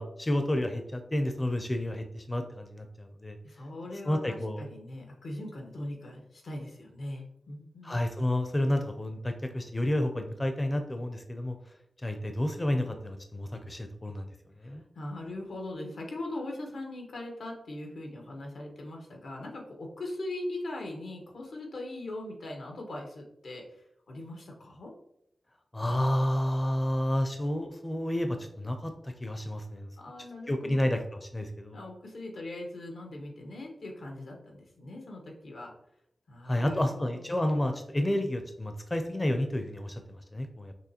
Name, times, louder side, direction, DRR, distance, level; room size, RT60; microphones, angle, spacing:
voice 1, 0.0-3.4 4.0-4.7 7.8-11.6 12.0-14.3 14.6-14.8 25.7-29.9 30.5-31.8 36.5-40.7, left 1 dB, 20° left, 6 dB, 0.4 m, -30 dB
voice 2, 3.4-8.0 14.6-23.6 24.1-24.9 30.0-30.9 31.7-35.7 36.3-37.2, left 1 dB, 90° left, 1 dB, 1.2 m, -40 dB
6.1 x 3.0 x 2.9 m, 0.75 s
wide cardioid pair, 120°, 0 cm